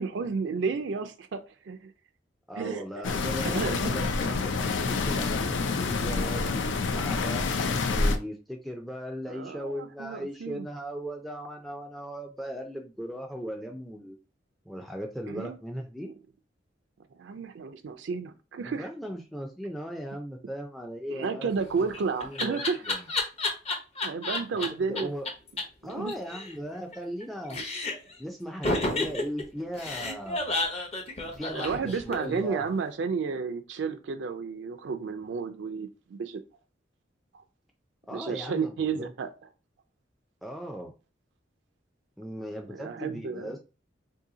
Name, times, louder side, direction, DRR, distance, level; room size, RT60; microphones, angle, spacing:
voice 1, 0.0-1.9 2.6-3.2 3.4-3.9 9.3-10.7 15.3-15.6 16.0-16.1 17.1-18.9 21.1-22.8 24.0-25.1 25.8-26.1 27.5-27.6 31.5-36.4 38.1-39.3 42.7-43.6, right 5 dB, 70° right, 7 dB, 0.4 m, -32 dB
voice 2, 2.5-7.4 7.9-14.2 14.7-16.1 18.6-21.5 22.2-23.1 24.6-25.3 25.8-27.6 28.2-30.5 31.3-32.7 38.1-38.7 39.0-39.1 40.4-40.9 42.2-43.6, equal, ahead, 3 dB, 0.4 m, -38 dB
sound 1, 3.0-8.2, left 4 dB, 80° left, 0.5 m, -27 dB
Laughter, 21.6-24.7 25.0-25.1 25.3-25.4 25.6-25.7 25.9-27.2 27.5-28.1 28.6-32.4, left 2 dB, 35° left, 0.7 m, -31 dB
2.7 x 2.7 x 3.8 m, 0.32 s
head